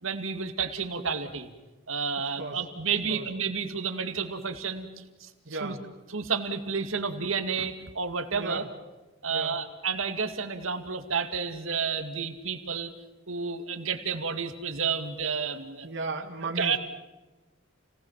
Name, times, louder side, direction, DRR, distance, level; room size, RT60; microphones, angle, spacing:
voice 1, 0.0-1.5 1.9-4.9 5.2-5.7 6.1-8.6 9.2-12.9 13.3-15.9 16.6-16.8, right 5 dB, 80° right, 6 dB, 2.4 m, -31 dB
voice 2, 5.5-5.8 8.3-8.7 9.3-9.6 15.8-16.8, right 3 dB, 60° right, 2 dB, 1.9 m, -35 dB
29.5 x 19.0 x 7.5 m, 1.1 s
head